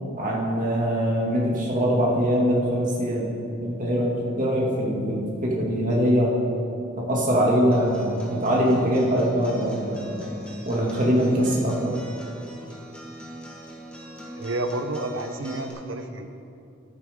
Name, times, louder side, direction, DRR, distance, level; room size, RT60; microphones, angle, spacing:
voice 1, 0.2-6.3 7.0-10.2 10.6-11.9, equal, 40° right, -4 dB, 2.4 m, -23 dB
Acoustic guitar, 7.7-15.7, equal, 5° left, 1.6 m, -41 dB
voice 2, 14.4-16.3, right 2 dB, 70° right, 7 dB, 1.0 m, -30 dB
13.5 x 11.5 x 3.8 m, 2.6 s
head